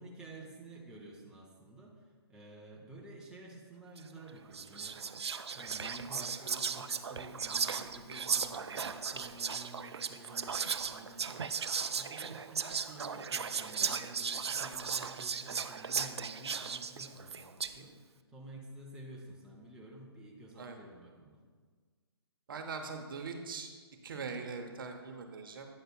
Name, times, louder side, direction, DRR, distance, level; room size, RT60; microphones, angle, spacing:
voice 1, 0.0-5.0 5.5-21.4, right 1 dB, 5° right, -2 dB, 0.7 m, -51 dB
Whispering, 4.0-4.2 4.5-17.8, right 6 dB, 80° right, 0.4 m, -36 dB
voice 2, 22.5-23.7 24.0-25.7, right 4 dB, 55° right, 5 dB, 0.8 m, -41 dB
9.3 x 6.5 x 2.3 m, 1.5 s
figure-of-eight pair, 135°, 14 cm